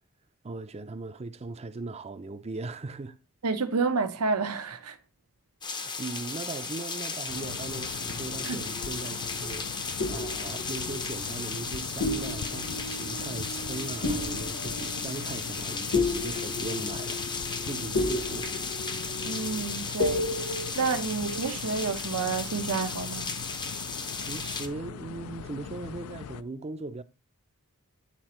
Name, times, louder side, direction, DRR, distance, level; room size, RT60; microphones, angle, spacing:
voice 1, 0.4-3.2 5.7-9.7 10.1-18.5 24.3-27.0, right 3 dB, 30° right, 0.5 m, -39 dB
voice 2, 3.4-5.0 8.4-8.6 19.2-23.3, right 4 dB, 85° right, 0.8 m, -30 dB
sound 1, 5.6-24.7, left 4 dB, 20° left, 0.6 m, -35 dB
sound 2, 7.3-26.4, left 7 dB, 70° left, 0.4 m, -41 dB
sound 3, 8.4-9.4 10.0-11.7 12.0-21.5, left 2 dB, 55° left, 1.0 m, -34 dB
9.8 x 4.0 x 3.0 m
head